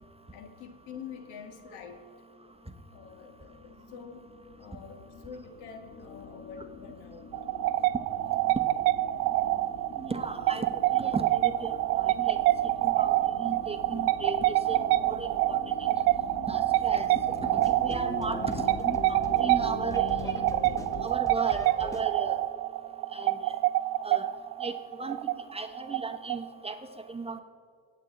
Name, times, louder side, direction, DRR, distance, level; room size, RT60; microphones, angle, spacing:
voice 1, 0.3-2.1 2.9-4.3 4.6-7.3, left 6 dB, 70° left, 6 dB, 2.0 m, -46 dB
sound 1, 2.7-21.1, left 3 dB, 30° left, 1.7 m, -44 dB
sound 2, 7.3-26.7, right 16 dB, 85° right, 0.6 m, -27 dB
voice 2, 10.0-12.4 12.8-16.1 16.5-20.4 21.0-22.4 23.1-23.5 24.0-24.3 24.6-24.7 25.0-25.2 25.5-27.4, right 3 dB, 10° right, 5 dB, 1.2 m, -36 dB
sound 3, 17.0-22.0, left 1 dB, 5° left, 1.7 m, -41 dB
24.0 x 8.8 x 4.0 m, 2.4 s
supercardioid pair, 80°, 47 cm